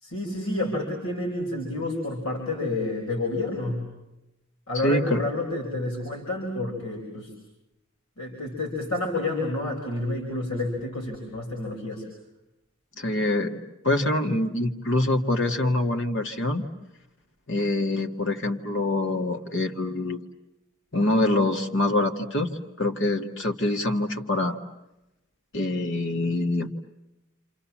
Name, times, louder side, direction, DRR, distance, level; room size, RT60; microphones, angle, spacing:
voice 1, 0.0-3.8 4.7-7.3 8.2-12.0, left 2 dB, 80° left, 0 dB, 5.2 m, -29 dB
voice 2, 4.7-5.3 13.0-13.6 13.8-16.7 17.5-20.3 20.9-24.6 25.5-26.7, left 2 dB, 55° left, 4 dB, 1.8 m, -25 dB
29.0 x 28.0 x 7.4 m, 0.94 s
head